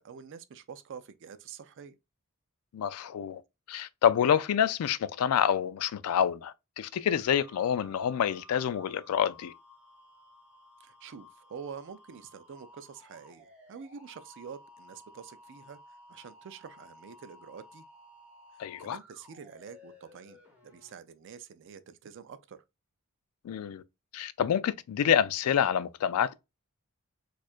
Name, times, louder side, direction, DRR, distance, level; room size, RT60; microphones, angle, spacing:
voice 1, 0.0-2.0 10.8-15.8 16.1-17.8 18.8-22.6, right 6 dB, 60° right, 0.4 m, -47 dB
voice 2, 2.7-3.4 3.7-9.5 18.6-19.0 23.4-23.8 24.1-26.4, left 8 dB, 90° left, 0.3 m, -27 dB
sound 1, 7.1-20.9, left 1 dB, 5° right, 1.5 m, -55 dB
4.3 x 2.4 x 2.4 m
head